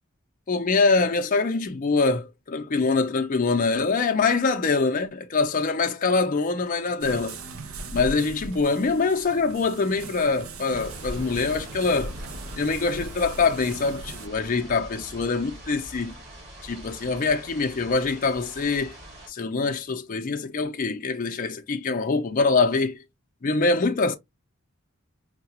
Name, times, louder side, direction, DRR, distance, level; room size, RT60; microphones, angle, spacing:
voice 1, 0.5-7.4 7.9-12.2 12.6-16.1 16.6-18.9 19.3-23.0 23.4-24.2, left 4 dB, 40° left, 0.5 m, -24 dB
sound 1, 7.0-14.3, right 2 dB, 75° right, 0.6 m, -39 dB
sound 2, 10.7-19.3, equal, 50° right, 2.0 m, -43 dB
4.6 x 2.2 x 2.8 m
head